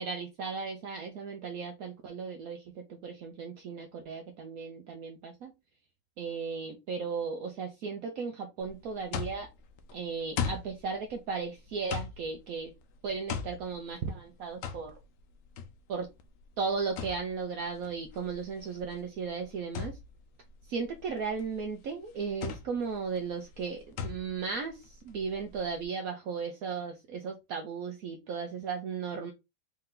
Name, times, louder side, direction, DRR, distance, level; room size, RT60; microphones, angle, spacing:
voice 1, 0.0-5.5 6.2-9.5 9.9-12.7 13.0-15.0 15.9-16.1 16.6-20.0 20.7-29.3, right 5 dB, 70° right, 0.8 m, -36 dB
sound 1, 8.6-25.8, left 7 dB, 70° left, 1.2 m, -41 dB
4.4 x 2.8 x 3.7 m
omnidirectional pair, 2.3 m